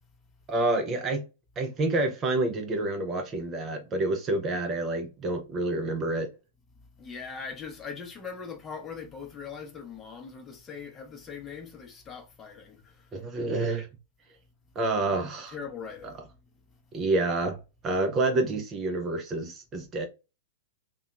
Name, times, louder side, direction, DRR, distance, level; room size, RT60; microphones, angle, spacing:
voice 1, 0.5-1.2 1.6-6.3 13.1-13.9 14.8-15.6 16.9-17.6 17.8-20.1, right 2 dB, 25° right, 0.5 m, -28 dB
voice 2, 6.8-13.1 15.5-16.2 16.7-16.8, left 6 dB, 20° left, 0.7 m, -41 dB
2.8 x 2.2 x 2.2 m
figure-of-eight pair, 105°, 0 cm